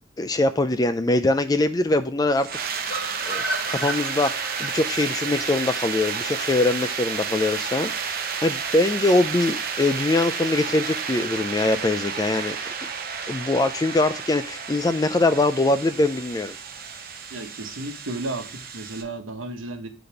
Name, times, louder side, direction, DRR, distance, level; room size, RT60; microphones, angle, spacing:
voice 1, 0.2-2.5 3.2-12.9 13.3-16.6, left 2 dB, 20° left, 11 dB, 0.3 m, -23 dB
sound 1, 2.4-19.0, right 6 dB, 45° right, 0.7 m, -31 dB
sound 2, 2.9-6.9 7.3-7.4 7.6-7.7 8.0-8.1, right 1 dB, 55° left, 1.7 m, -34 dB
voice 2, 17.3-19.9, right 2 dB, 85° right, 5 dB, 1.1 m, -33 dB
5.1 x 4.1 x 5.7 m, 0.35 s
head